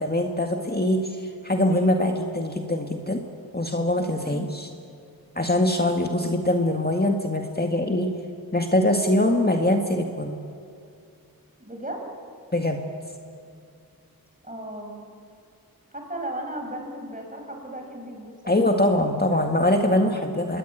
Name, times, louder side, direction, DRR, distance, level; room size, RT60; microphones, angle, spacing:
voice 1, 0.0-3.2 3.5-4.7 5.4-8.1 8.5-10.4 12.5-12.8 18.5-20.6, left 1 dB, 25° left, 3 dB, 1.9 m, -23 dB
voice 2, 11.6-12.1 14.4-15.0 15.9-19.5 19.8-20.4, right 1 dB, 20° right, 2 dB, 6.3 m, -36 dB
25.5 x 21.0 x 9.2 m, 2.4 s
wide cardioid pair, 45°, 36 cm